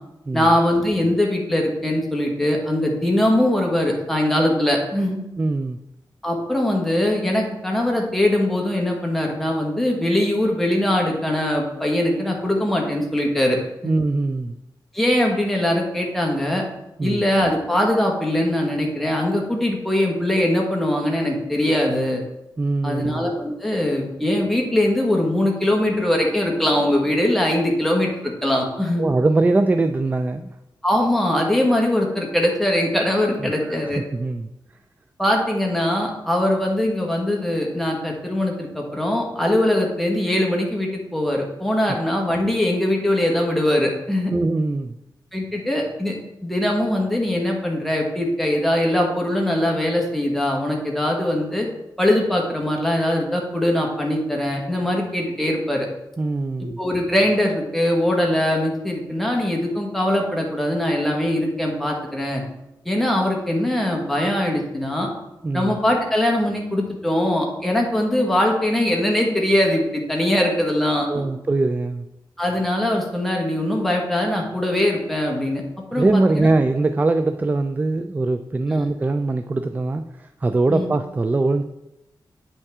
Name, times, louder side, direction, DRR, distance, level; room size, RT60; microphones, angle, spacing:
voice 1, 0.3-5.2 6.2-13.6 13.8-13.9 14.9-16.6 17.0-22.2 22.8-29.0 30.8-34.0 35.2-44.3 45.3-46.2 46.4-51.7 52.0-55.9 56.8-62.4 62.8-65.1 65.5-71.2 72.4-75.6 75.9-76.5 78.7-78.8 80.7-80.9, left 1 dB, ahead, -1 dB, 1.5 m, -21 dB
voice 2, 5.4-5.8 13.8-14.6 17.0-17.2 22.6-23.3 29.0-30.5 33.4-34.5 44.3-45.0 56.2-56.8 65.4-65.8 71.1-72.1 75.9-81.6, right 2 dB, 20° right, 9 dB, 0.3 m, -22 dB
8.3 x 5.5 x 3.6 m, 0.90 s
wide cardioid pair, 115°, 8 cm